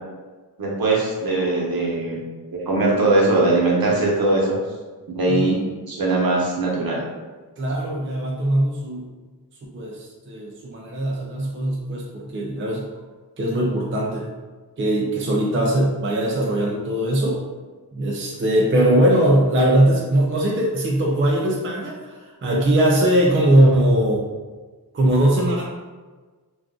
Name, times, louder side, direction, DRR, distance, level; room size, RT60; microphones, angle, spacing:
voice 1, 0.6-2.2 2.5-4.6 5.1-5.6 5.9-7.0, right 2 dB, 65° right, -4 dB, 0.9 m, -20 dB
voice 2, 7.6-9.1 9.7-12.8 13.4-14.3 14.8-17.4 17.9-24.3 24.9-25.6, right 1 dB, 30° right, -2 dB, 0.4 m, -20 dB
2.5 x 2.3 x 3.6 m, 1.3 s
wide cardioid pair, 85°, 39 cm